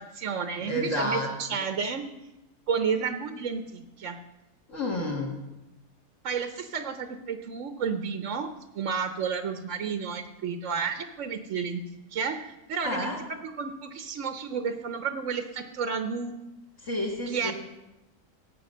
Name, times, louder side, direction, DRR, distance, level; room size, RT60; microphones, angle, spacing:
voice 1, 0.0-2.0 2.7-4.2 6.2-8.5 8.7-11.8 12.1-16.4 17.3-17.5, right 6 dB, 55° right, 7 dB, 1.1 m, -31 dB
voice 2, 0.6-1.3 4.7-5.3 12.8-13.2 16.8-17.5, left 1 dB, 50° left, -1 dB, 2.4 m, -30 dB
17.5 x 8.5 x 6.7 m, 0.98 s
omnidirectional pair, 1.7 m